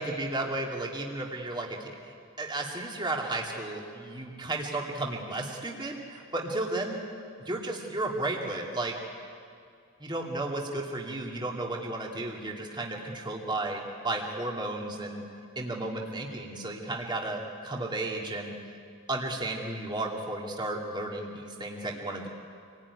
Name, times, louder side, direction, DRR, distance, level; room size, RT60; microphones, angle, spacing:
voice 1, 0.0-2.1 2.4-7.0 7.5-8.9 10.0-15.2 15.6-18.5 19.1-22.3, right 2 dB, 20° right, -1 dB, 2.6 m, -33 dB
27.0 x 18.5 x 9.9 m, 2.3 s
head